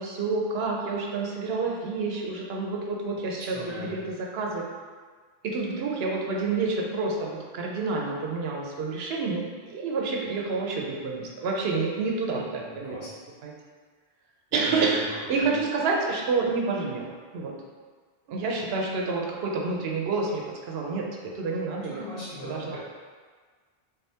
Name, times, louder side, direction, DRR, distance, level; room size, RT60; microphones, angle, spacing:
voice 1, 0.0-4.7 5.4-13.1 13.4-13.5 14.5-17.6 18.3-22.0 22.4-22.8, right 3 dB, 80° right, -1 dB, 0.8 m, -29 dB
voice 2, 3.5-4.0 12.5-13.1 14.5-15.0 15.3-15.5 21.9-22.8, left 1 dB, 40° left, -11 dB, 1.3 m, -38 dB
3.8 x 3.3 x 2.7 m, 1.5 s
omnidirectional pair, 1.0 m